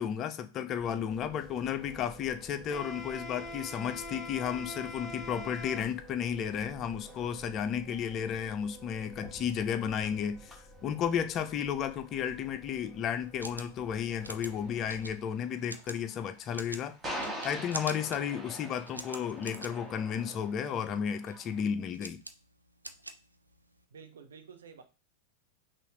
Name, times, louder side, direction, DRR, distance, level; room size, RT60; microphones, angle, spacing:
voice 1, 0.0-17.0 17.4-22.2, left 8 dB, 30° left, 0.5 m, -33 dB
sound 1, 0.8-15.1, left 1 dB, 5° left, 1.2 m, -47 dB
sound 2, 13.2-23.8, right 1 dB, 85° right, 0.4 m, -46 dB
sound 3, 14.2-21.6, equal, 15° right, 1.6 m, -44 dB
voice 2, 23.9-24.8, right 6 dB, 65° right, 0.8 m, -50 dB
5.6 x 2.4 x 3.0 m
figure-of-eight pair, 90°, 0 cm